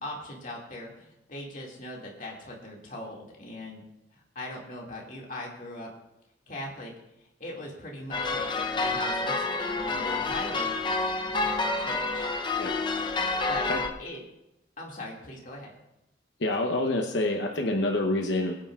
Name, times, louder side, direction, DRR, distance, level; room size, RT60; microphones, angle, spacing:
voice 1, 0.0-3.8 4.1-5.9 6.5-6.9 7.4-10.7 11.4-12.3 13.5-13.7 14.0-14.2 14.8-15.7, left 1 dB, 45° left, -2 dB, 2.2 m, -40 dB
sound 1, 8.1-13.9, left 3 dB, 25° left, 0.7 m, -28 dB
voice 2, 16.4-18.6, left 2 dB, 80° left, 2 dB, 0.9 m, -27 dB
22.0 x 9.2 x 2.4 m, 0.88 s
head